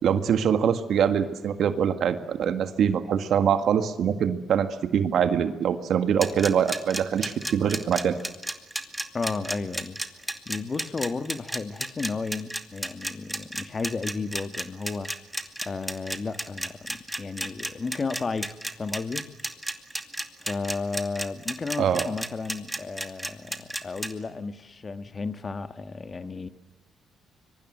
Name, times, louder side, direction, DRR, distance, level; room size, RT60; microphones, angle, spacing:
voice 1, 0.0-8.2 21.8-22.1, right 8 dB, 70° right, 1.8 m, -24 dB
sound 1, 6.2-24.1, right 1 dB, 5° right, 2.3 m, -32 dB
voice 2, 9.1-10.0 10.4-15.1 15.6-19.3 20.4-26.5, left 4 dB, 35° left, 1.7 m, -33 dB
25.0 x 24.0 x 8.0 m
cardioid pair, 90°, 0 cm